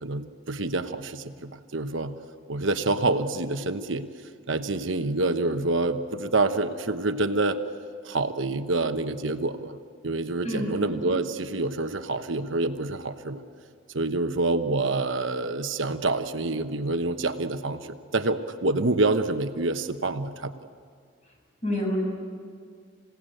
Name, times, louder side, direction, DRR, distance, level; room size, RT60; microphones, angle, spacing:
voice 1, 0.0-2.1 2.5-4.1 4.5-7.6 8.0-9.8 10.0-13.4 13.9-17.8 18.1-20.5, right 2 dB, 75° right, 8 dB, 1.1 m, -27 dB
voice 2, 10.4-10.9 21.6-22.0, equal, 35° left, -1 dB, 7.1 m, -28 dB
27.5 x 17.0 x 9.1 m, 2.1 s
head